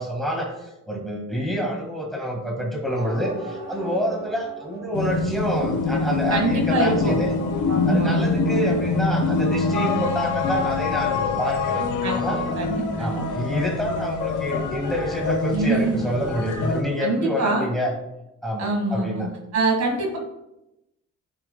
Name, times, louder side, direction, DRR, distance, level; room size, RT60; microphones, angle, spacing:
voice 1, 0.0-7.3 7.8-11.9 12.1-12.5 13.0-17.9 18.4-19.3, equal, ahead, -1 dB, 1.7 m, -27 dB
sound 1, 2.9-6.2, right 1 dB, 35° right, 2.0 m, -38 dB
sound 2, 4.9-16.8, left 4 dB, 85° left, 1.0 m, -25 dB
voice 2, 6.3-7.1 7.7-8.5 12.0-13.2 15.5-16.0 17.0-17.7 18.6-19.3 19.5-20.2, right 2 dB, 60° right, 0 dB, 1.9 m, -24 dB
10.0 x 5.4 x 2.2 m, 0.91 s
cardioid pair, 90°, 30 cm